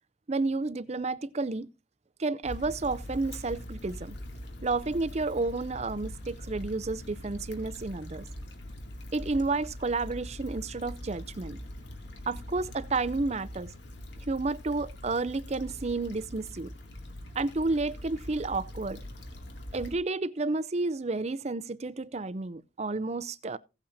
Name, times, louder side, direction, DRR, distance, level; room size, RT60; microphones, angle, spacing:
voice 1, 0.3-1.7 2.2-4.2 4.6-8.3 9.1-11.6 12.3-13.7 14.3-16.7 17.3-19.0 19.7-23.6, right 3 dB, 35° right, 0.5 m, -31 dB
Stream / Traffic noise roadway noise / Trickle dribble, 2.4-20.0, left 1 dB, 65° left, 2.4 m, -42 dB
16.5 x 8.6 x 2.7 m
head